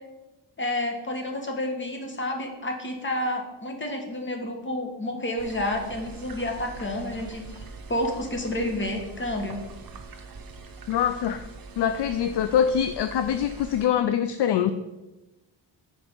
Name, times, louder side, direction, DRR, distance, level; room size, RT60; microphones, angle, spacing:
voice 1, 0.6-7.6 7.9-9.6, left 1 dB, 25° left, 3 dB, 1.4 m, -30 dB
sound 1, 5.4-13.9, right 4 dB, 50° right, 1.1 m, -43 dB
voice 2, 10.9-11.5 11.8-14.7, left 9 dB, 65° left, 10 dB, 0.5 m, -24 dB
7.2 x 4.7 x 5.4 m, 1.1 s
cardioid pair, 105°, 46 cm